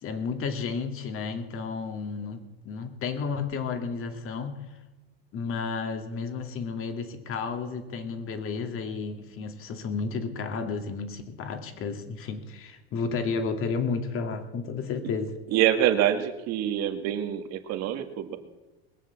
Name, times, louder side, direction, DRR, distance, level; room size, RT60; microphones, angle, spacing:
voice 1, 0.0-4.6 5.3-15.4, left 5 dB, 45° left, 6 dB, 2.5 m, -32 dB
voice 2, 15.5-18.4, right 11 dB, 55° right, 6 dB, 2.2 m, -25 dB
21.5 x 7.4 x 7.3 m, 1.1 s
hypercardioid pair, 95°, 31 cm